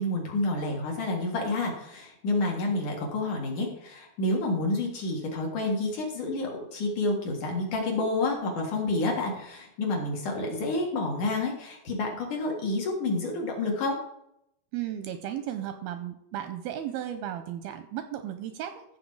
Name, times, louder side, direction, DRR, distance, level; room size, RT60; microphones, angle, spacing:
voice 1, 0.0-14.0, left 2 dB, 55° left, 0 dB, 2.8 m, -29 dB
voice 2, 14.7-18.8, right 11 dB, 80° right, 8 dB, 2.3 m, -35 dB
14.5 x 6.6 x 4.7 m, 0.79 s
omnidirectional pair, 4.8 m